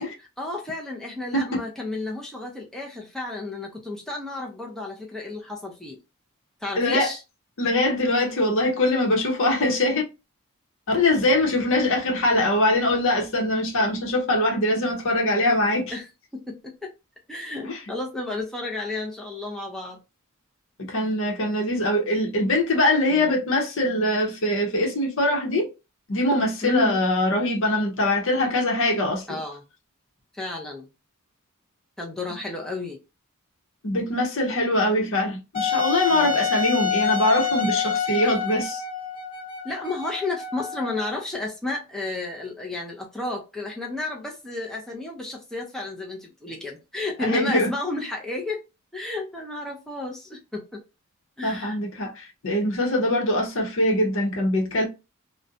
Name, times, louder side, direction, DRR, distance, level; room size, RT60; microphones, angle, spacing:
voice 1, 0.0-6.0 6.6-7.2 11.8-12.0 15.9-16.0 16.3-16.9 17.3-20.0 23.1-23.3 26.6-27.0 29.3-29.6 30.3-30.9 32.0-33.0 36.1-36.5 39.6-48.6 48.9-50.8 51.4-51.8, left 2 dB, ahead, 0.5 m, -32 dB
voice 2, 6.8-7.1 7.6-10.0 10.9-15.9 17.6-17.8 20.9-25.7 26.1-29.4 33.8-38.8 47.2-47.7 51.4-54.8, left 1 dB, 65° left, 0.8 m, -23 dB
Wind instrument woodwind instrument, 35.5-41.2, left 6 dB, 25° left, 1.1 m, -27 dB
2.5 x 2.1 x 2.6 m
head